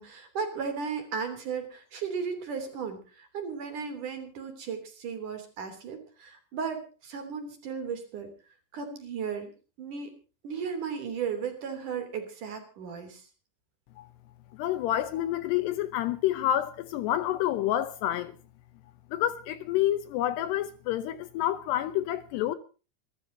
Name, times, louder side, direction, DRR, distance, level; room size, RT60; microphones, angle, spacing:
voice 1, 0.0-8.3 8.7-10.1 10.4-13.3, right 6 dB, 45° right, 4.4 m, -35 dB
voice 2, 14.5-18.3 19.1-22.6, left 12 dB, 75° left, 2.8 m, -28 dB
26.0 x 14.0 x 2.8 m
omnidirectional pair, 5.3 m